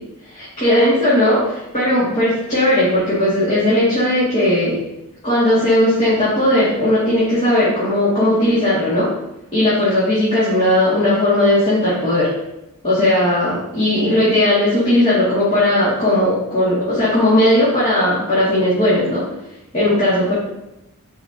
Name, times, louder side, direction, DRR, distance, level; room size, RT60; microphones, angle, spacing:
voice 1, 0.3-4.8 5.2-9.1 9.5-12.3 12.8-19.3 19.7-20.3, left 1 dB, 30° left, -10 dB, 2.4 m, -17 dB
10.5 x 4.9 x 2.9 m, 0.92 s
head